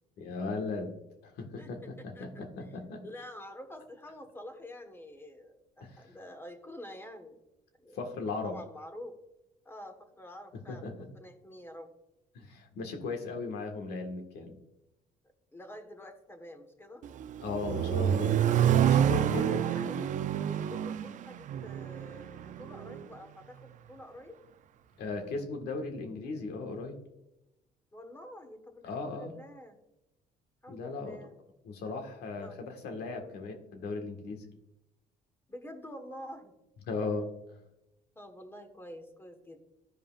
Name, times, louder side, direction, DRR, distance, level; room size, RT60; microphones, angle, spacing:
voice 1, 0.2-1.0 1.2-3.0 5.8-6.1 7.9-8.6 10.5-10.9 12.4-14.6 17.4-18.4 18.8-20.1 25.0-27.0 28.8-29.3 30.7-31.2 31.6-34.5 36.9-37.3, left 3 dB, 75° left, 4 dB, 1.7 m, -37 dB
voice 2, 1.6-2.7 3.0-7.4 7.8-9.2 9.6-11.9 15.5-17.0 19.2-20.0 20.4-24.4 27.9-29.8 30.6-31.3 32.4-32.6 33.1-33.4 35.5-36.5 38.1-39.7, left 1 dB, 15° left, 5 dB, 1.4 m, -48 dB
Accelerating revving vroom, 17.0-23.1, right 10 dB, 50° right, 0.4 m, -28 dB
14.0 x 5.1 x 2.5 m, 0.91 s
cardioid pair, 110°, 17 cm